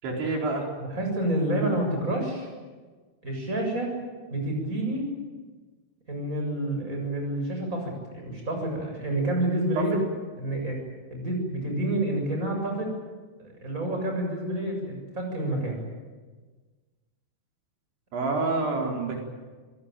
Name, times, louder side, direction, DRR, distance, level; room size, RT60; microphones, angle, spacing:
voice 1, 0.0-0.7 9.8-10.0 18.1-19.2, right 3 dB, 90° right, 0 dB, 6.8 m, -27 dB
voice 2, 0.8-2.5 3.2-3.9 4.3-5.1 6.1-9.9 10.4-10.8 11.1-13.0 13.6-15.8, right 1 dB, 15° right, 2 dB, 7.5 m, -28 dB
27.5 x 18.5 x 9.1 m, 1.4 s
omnidirectional pair, 5.1 m